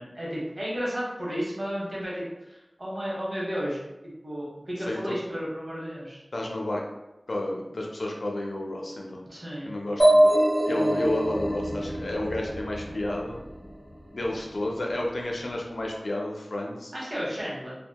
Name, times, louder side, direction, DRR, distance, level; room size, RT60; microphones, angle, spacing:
voice 1, 0.0-3.8 4.2-6.2 9.3-9.7 16.9-17.8, equal, 50° right, -6 dB, 1.0 m, -33 dB
voice 2, 6.3-6.8 7.3-9.2 9.6-10.4 10.7-13.4 14.1-16.9, left 1 dB, 85° left, -1 dB, 0.4 m, -31 dB
sound 1, 10.0-13.7, right 1 dB, 20° left, 1.4 m, -23 dB
2.8 x 2.1 x 2.2 m, 0.98 s
wide cardioid pair, 50°, 0 cm